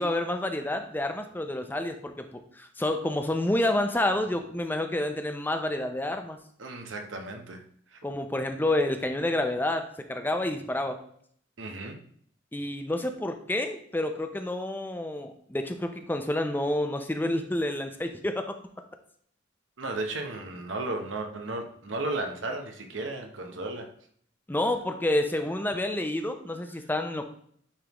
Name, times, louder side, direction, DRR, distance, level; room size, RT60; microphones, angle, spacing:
voice 1, 0.0-6.4 8.0-11.0 12.5-18.6 24.5-27.3, left 1 dB, 10° left, 6 dB, 0.5 m, -29 dB
voice 2, 6.6-7.6 7.9-8.0 11.6-12.0 19.8-23.9, right 2 dB, 85° right, 5 dB, 0.9 m, -34 dB
9.7 x 3.6 x 3.0 m, 0.63 s
head